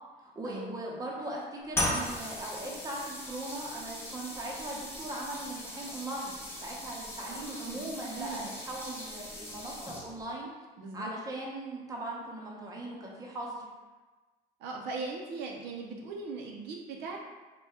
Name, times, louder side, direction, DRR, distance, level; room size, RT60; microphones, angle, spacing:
voice 1, 0.2-10.5 10.9-13.6, right 1 dB, 20° right, -3 dB, 0.7 m, -39 dB
sound 1, 1.7-10.3, left 1 dB, 15° left, 0.8 m, -38 dB
voice 2, 7.3-8.5 10.8-11.1 14.6-17.2, right 4 dB, 80° right, 0 dB, 0.5 m, -40 dB
2.7 x 2.2 x 3.4 m, 1.3 s
cardioid pair, 110°, 17 cm